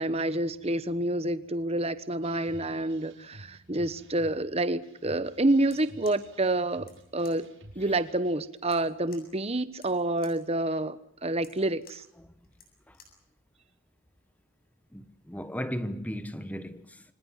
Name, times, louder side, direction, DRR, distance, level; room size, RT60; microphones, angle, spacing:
voice 1, 0.0-7.5 7.7-12.0, right 2 dB, 30° right, 1.2 m, -28 dB
sound 1, 2.2-8.5, right 1 dB, 65° right, 6.3 m, -52 dB
sound 2, 5.6-13.3, left 5 dB, 45° left, 7.6 m, -58 dB
voice 2, 14.9-17.0, equal, 5° left, 1.3 m, -36 dB
29.5 x 25.0 x 5.8 m
head